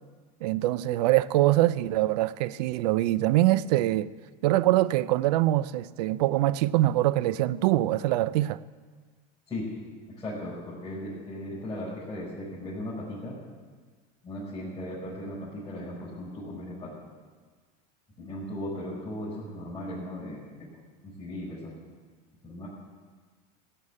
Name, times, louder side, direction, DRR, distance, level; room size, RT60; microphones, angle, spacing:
voice 1, 0.4-4.1 4.4-8.6, right 15 dB, 85° right, 0.5 m, -24 dB
voice 2, 10.1-13.4 14.2-17.0 18.2-20.4 21.0-21.7 22.4-22.7, left 1 dB, 20° left, 5.1 m, -37 dB
16.0 x 8.7 x 8.6 m
supercardioid pair, 110°, 20 cm